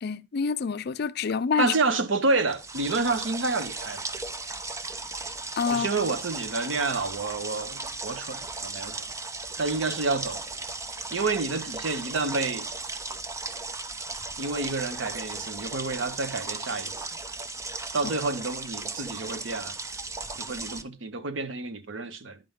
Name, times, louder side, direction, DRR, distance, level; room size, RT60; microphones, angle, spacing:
voice 1, 0.0-1.7 5.6-5.9, left 5 dB, 60° left, 0.4 m, -27 dB
voice 2, 1.6-4.1 5.7-9.1 9.6-10.4 11.1-12.7 14.4-17.1 17.9-19.8 20.4-22.4, right 3 dB, 90° right, 0.8 m, -29 dB
sound 1, 2.5-20.8, right 3 dB, 15° right, 0.5 m, -36 dB
10.5 x 5.2 x 3.5 m
head